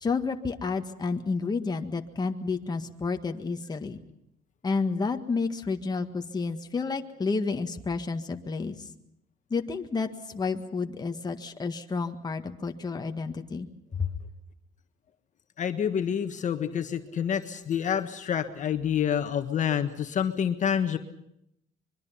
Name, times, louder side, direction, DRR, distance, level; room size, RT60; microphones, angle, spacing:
voice 1, 0.0-4.0 4.6-8.9 9.5-13.7 13.9-14.1, left 4 dB, 25° left, 5 dB, 1.7 m, -30 dB
voice 2, 15.6-21.0, left 8 dB, 45° left, 7 dB, 1.6 m, -28 dB
25.0 x 22.5 x 5.8 m, 0.77 s
cardioid pair, 110°, 17 cm